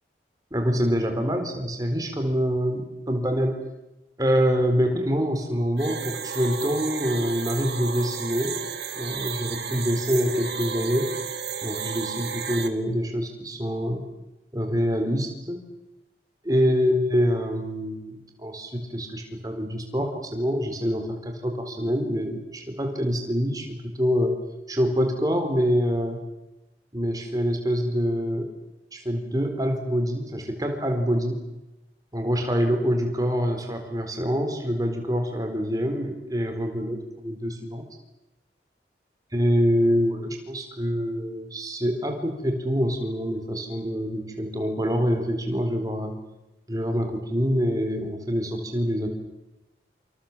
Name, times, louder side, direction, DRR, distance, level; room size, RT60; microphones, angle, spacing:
voice 1, 0.5-3.6 4.2-8.6 8.9-11.2 11.6-14.0 14.5-15.6 16.4-24.3 24.7-26.2 26.9-28.5 28.9-31.4 32.1-37.9 39.3-46.1 46.7-49.1, equal, 20° right, 4 dB, 4.3 m, -25 dB
sound 1, 5.8-12.7, right 7 dB, 65° right, 2.1 m, -33 dB
27.5 x 26.5 x 7.5 m, 0.98 s
head